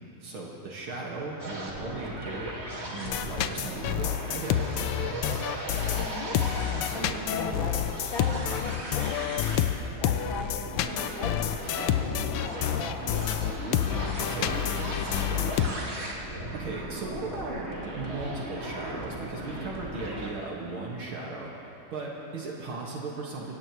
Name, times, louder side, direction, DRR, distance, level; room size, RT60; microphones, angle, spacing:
voice 1, 0.2-2.5 2.9-4.7 14.2-15.9 16.5-17.6 18.0-21.5 21.9-23.6, right 3 dB, 75° right, -3 dB, 2.6 m, -37 dB
sound 1, 1.4-20.3, right 1 dB, 30° right, 2.2 m, -37 dB
sound 2, 3.0-15.7, left 11 dB, 85° left, 1.6 m, -29 dB
voice 2, 5.9-6.4 6.9-9.3 10.0-13.1, left 2 dB, 65° left, -2 dB, 2.9 m, -38 dB
24.5 x 17.5 x 3.2 m, 2.9 s
omnidirectional pair, 2.3 m